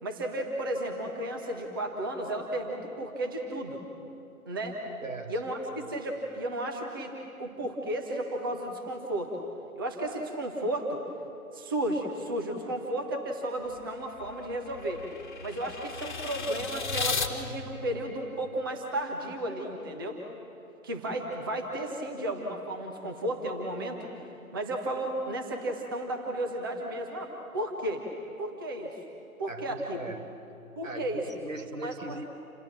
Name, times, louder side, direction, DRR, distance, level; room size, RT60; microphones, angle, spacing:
voice 1, 0.0-3.8 4.5-4.8 5.3-7.1 7.4-9.3 9.8-11.0 11.5-15.0 15.4-20.2 20.8-24.1 24.5-28.0 28.4-29.0 29.4-30.0 30.8-31.2 31.8-32.2, right 1 dB, 15° right, 1 dB, 1.3 m, -33 dB
voice 2, 5.0-5.3 29.5-30.4 30.8-32.3, right 2 dB, 60° right, 7 dB, 1.8 m, -40 dB
sound 1, 13.7-17.3, left 5 dB, 35° left, 1.9 m, -35 dB
28.5 x 27.5 x 7.5 m, 2.8 s
figure-of-eight pair, 150°, 44 cm